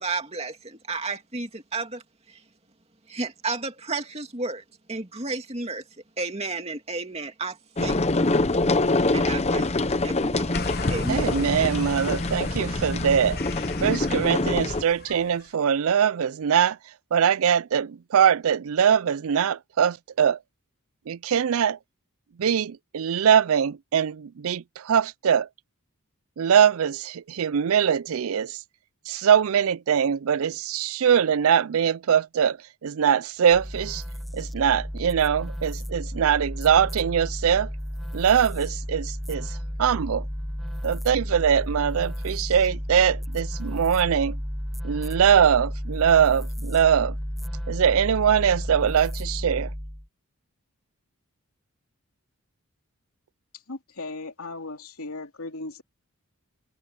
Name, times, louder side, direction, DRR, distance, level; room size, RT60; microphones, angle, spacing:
voice 1, 0.0-2.4 3.1-4.6 4.9-5.8 6.2-8.3 9.1-11.3, right 3 dB, 25° right, 2.6 m, -33 dB
sound 1, 7.8-14.8, left 2 dB, 30° left, 0.8 m, -25 dB
sound 2, 10.5-15.3, left 3 dB, 45° left, 1.2 m, -34 dB
voice 2, 11.1-13.4 13.8-16.8 17.1-20.4 21.1-21.8 22.4-25.5 26.4-28.6 29.1-32.6 32.8-34.0 34.3-37.7 38.1-40.3 40.8-44.4 44.8-47.2 47.7-49.7, right 8 dB, 70° right, 0.4 m, -22 dB
sound 3, 33.5-50.1, equal, ahead, 0.9 m, -32 dB
voice 3, 53.7-55.8, left 2 dB, 75° left, 3.0 m, -37 dB
head